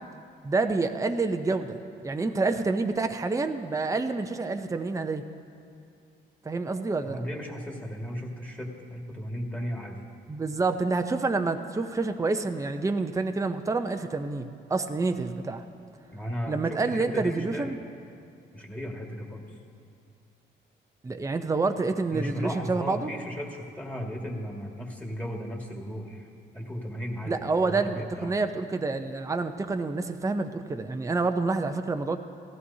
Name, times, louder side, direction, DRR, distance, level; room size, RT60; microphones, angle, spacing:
voice 1, 0.4-5.2 6.4-7.3 10.3-15.6 16.5-17.8 21.0-23.1 27.3-32.2, right 3 dB, 15° right, 6 dB, 0.6 m, -28 dB
voice 2, 7.0-10.0 16.1-17.7 18.5-19.6 22.1-26.3 26.5-28.4, equal, 5° left, -1 dB, 2.0 m, -35 dB
17.5 x 14.5 x 2.8 m, 2.4 s
cardioid pair, 90°, 20 cm